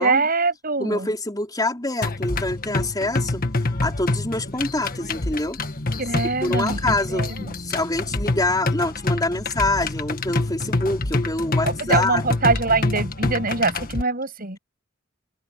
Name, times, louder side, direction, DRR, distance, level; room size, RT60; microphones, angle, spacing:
voice 1, 0.0-1.1 6.0-7.4 11.6-14.6, right 3 dB, 45° right, 7.1 m, -23 dB
voice 2, 0.8-3.4 3.8-5.6 6.4-7.3 7.6-12.2, left 2 dB, 20° left, 4.6 m, -25 dB
sound 1, 2.0-14.0, left 2 dB, 45° left, 1.7 m, -26 dB
head